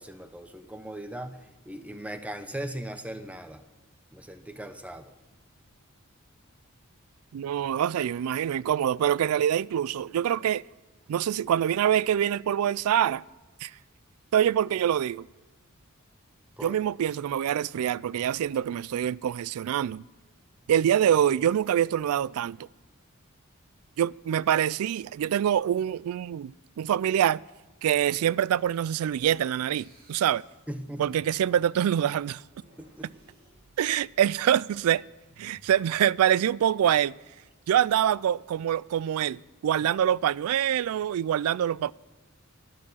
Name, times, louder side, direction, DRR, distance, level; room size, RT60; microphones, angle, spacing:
voice 1, 0.0-1.4 1.6-3.6 4.1-5.1 16.6-16.8 30.7-31.1 32.8-33.1, right 1 dB, 5° right, 0.8 m, -38 dB
voice 2, 7.3-10.6 11.1-13.2 13.6-13.7 14.3-15.3 16.6-20.0 20.7-22.7 24.0-27.4 27.8-30.4 31.0-32.4 33.8-35.0 35.4-37.1 37.7-41.9, right 10 dB, 75° right, 0.3 m, -25 dB
sound 1, 28.4-34.3 35.2-35.9, right 1 dB, 45° right, 2.4 m, -59 dB
12.0 x 11.0 x 5.6 m
head